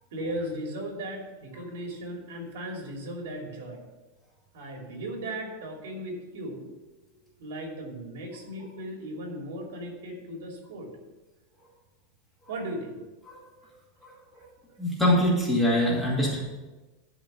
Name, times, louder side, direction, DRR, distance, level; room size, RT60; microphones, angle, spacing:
voice 1, 0.1-3.8 4.5-6.7 7.4-10.9 12.5-13.0 13.6-13.7 14.3-14.8, right 1 dB, 85° right, 1 dB, 2.7 m, -37 dB
voice 2, 14.0-14.5 14.8-16.4, left 1 dB, 5° left, -6 dB, 2.3 m, -24 dB
11.0 x 4.8 x 6.7 m, 1.1 s
supercardioid pair, 175°, 0 cm